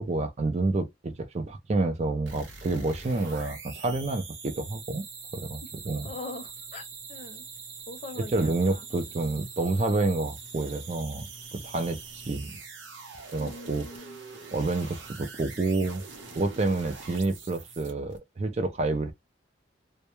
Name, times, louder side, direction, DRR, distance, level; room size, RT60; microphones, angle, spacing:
voice 1, 0.0-5.1 5.3-6.1 8.3-11.2 11.5-12.5 13.3-13.8 14.5-16.0 16.3-19.1, right 2 dB, 35° right, 0.4 m, -28 dB
sound 1, 2.3-18.2, right 5 dB, 85° right, 0.8 m, -44 dB
voice 2, 6.0-7.5 7.9-8.9 13.4-14.2, left 2 dB, 40° left, 0.6 m, -42 dB
2.2 x 2.1 x 2.9 m
head